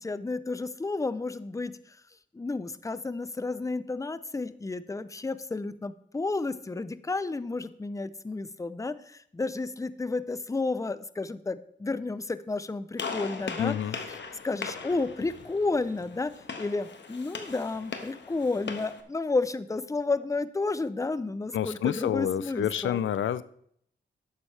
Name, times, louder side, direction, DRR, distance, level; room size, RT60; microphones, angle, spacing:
voice 1, 0.0-1.8 2.3-9.0 9.3-13.8 14.4-23.0, left 3 dB, 15° left, 15 dB, 0.5 m, -31 dB
Gunshot gunfire, 13.0-19.0, left 5 dB, 70° left, 1.3 m, -39 dB
voice 2, 13.6-14.0 21.5-23.4, left 10 dB, 85° left, 16 dB, 0.5 m, -28 dB
11.5 x 8.8 x 3.3 m, 0.66 s
cardioid pair, 75°, 19 cm